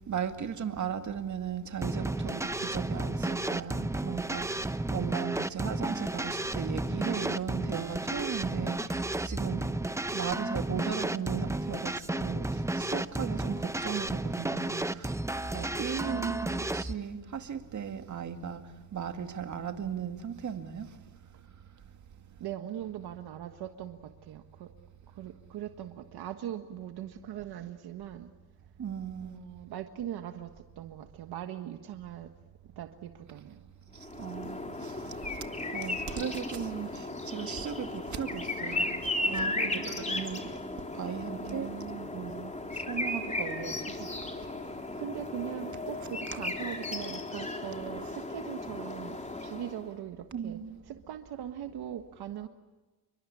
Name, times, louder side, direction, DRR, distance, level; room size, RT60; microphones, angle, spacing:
voice 1, 0.0-9.8 10.1-15.2 15.5-21.0 28.8-29.4 33.9-40.6 40.9-41.7 42.1-44.5 44.8-45.0 46.3-46.4 48.0-48.1 50.3-50.8, right 8 dB, 50° right, 2.2 m, -37 dB
sound 1, 1.8-16.9, right 2 dB, 5° right, 0.8 m, -32 dB
voice 2, 16.1-16.7 22.4-24.7 25.1-28.3 29.2-30.5 30.8-32.3 32.8-33.6 39.3-40.0 41.4-42.1 45.0-50.6 51.1-52.5, right 11 dB, 75° right, 1.6 m, -40 dB
sound 2, 34.0-49.9, left 2 dB, 20° left, 3.4 m, -36 dB
29.0 x 23.5 x 8.5 m
cardioid pair, 90°, 38 cm